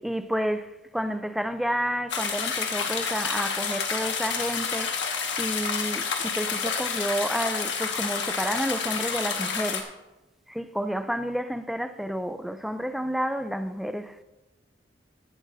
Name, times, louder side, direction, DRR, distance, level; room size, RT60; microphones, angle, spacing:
voice 1, 0.0-9.9 10.5-14.2, equal, ahead, 0.4 m, -30 dB
sound 1, 2.1-9.8, left 6 dB, 80° left, 1.5 m, -29 dB
15.0 x 11.5 x 2.6 m
head